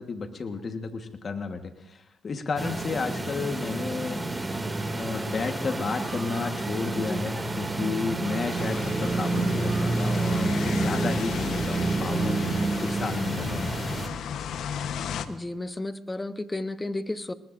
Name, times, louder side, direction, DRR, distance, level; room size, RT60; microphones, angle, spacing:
voice 1, 0.0-4.6 4.9-13.8, left 4 dB, 40° left, 5 dB, 1.4 m, -32 dB
sound 1, 2.6-14.1, right 2 dB, 15° right, 2.4 m, -29 dB
sound 2, 5.0-7.8 8.2-10.9, right 5 dB, 45° right, 5.4 m, -47 dB
sound 3, 8.6-15.3, left 8 dB, 75° left, 1.0 m, -35 dB
voice 2, 15.3-17.3, left 2 dB, 15° left, 11 dB, 0.9 m, -33 dB
26.5 x 20.5 x 2.6 m, 0.85 s
cardioid pair, 90°, 0 cm